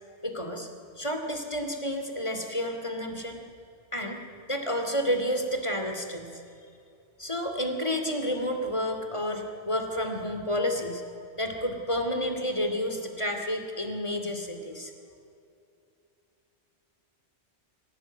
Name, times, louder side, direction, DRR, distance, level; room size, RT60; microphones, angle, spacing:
voice 1, 0.2-0.7 1.0-3.4 3.9-4.2 4.5-6.3 7.2-14.9, equal, 25° left, 5 dB, 2.7 m, -30 dB
25.0 x 16.5 x 9.1 m, 2.6 s
omnidirectional pair, 1.2 m